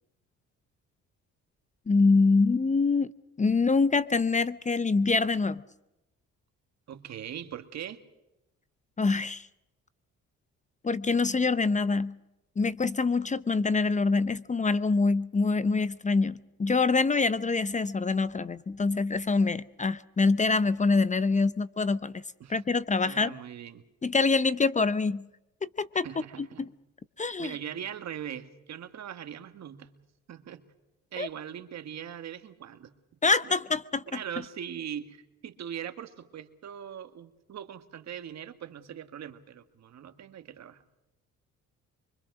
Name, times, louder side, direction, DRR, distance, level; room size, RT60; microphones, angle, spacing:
voice 1, 1.9-3.1 3.4-5.6 9.0-9.5 10.8-12.2 12.6-22.2 22.5-23.3 24.0-25.3 25.6-26.1 26.6-26.7 27.2-27.5 31.2-31.3 33.2-34.0, left 4 dB, 25° left, 0.7 m, -25 dB
voice 2, 6.9-8.0 22.4-22.8 23.0-23.9 26.0-26.7 27.4-29.9 30.3-30.6 31.1-33.0 33.4-33.5 34.1-40.8, right 9 dB, 65° right, 2.0 m, -41 dB
25.0 x 24.0 x 6.3 m
cardioid pair, 90°, 30 cm